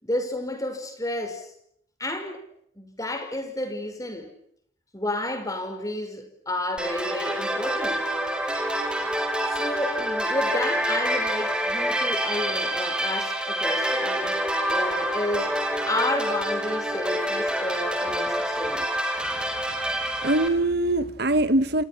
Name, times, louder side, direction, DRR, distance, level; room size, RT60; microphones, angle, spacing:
voice 1, 0.0-1.5 2.0-2.4 2.8-4.3 4.9-8.0 9.4-14.4 14.7-15.5 15.9-18.9, left 1 dB, 20° left, 5.8 m, -31 dB
sound 1, 6.8-20.5, equal, 5° right, 4.3 m, -27 dB
voice 2, 19.3-21.8, right 1 dB, 55° right, 1.7 m, -24 dB
29.0 x 28.5 x 6.1 m
head